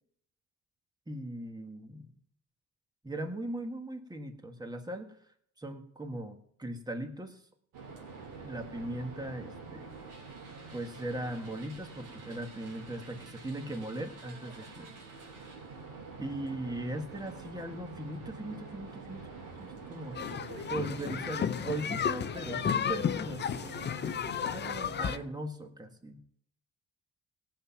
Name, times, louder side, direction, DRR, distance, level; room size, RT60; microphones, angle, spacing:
voice 1, 1.1-2.1 3.0-5.1 5.6-7.4 8.4-9.9 10.7-14.9 16.2-19.3 19.6-20.2 20.7-23.9 24.4-26.2, right 1 dB, 15° right, 5 dB, 1.7 m, -39 dB
sound 1, 7.7-25.3, right 4 dB, 85° right, 3.1 m, -47 dB
voice 2, 14.2-15.0 20.2-21.2 22.1-22.5 24.2-24.6, right 3 dB, 45° right, 5 dB, 1.1 m, -50 dB
sound 2, 20.2-25.2, left 8 dB, 35° left, 0.5 m, -33 dB
17.5 x 5.9 x 5.8 m, 0.69 s
cardioid pair, 90°, 30 cm